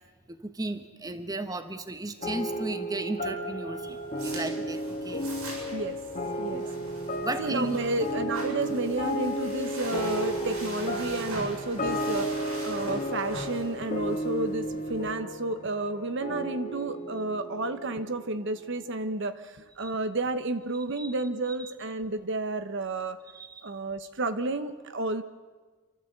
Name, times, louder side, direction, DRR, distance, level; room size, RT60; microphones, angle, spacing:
voice 1, 0.3-5.3 6.5-6.7 7.2-7.7 19.8-19.9 21.0-21.1 21.6-21.7 23.3-23.7, right 2 dB, 15° right, 9 dB, 1.1 m, -35 dB
sound 1, 2.2-19.0, equal, 35° left, 2.0 m, -34 dB
sound 2, 3.7-15.1, right 1 dB, 85° right, 7.7 m, -43 dB
voice 2, 7.4-23.2 23.6-25.2, right 2 dB, 55° right, 10 dB, 0.9 m, -31 dB
28.0 x 13.5 x 8.0 m, 1.4 s
head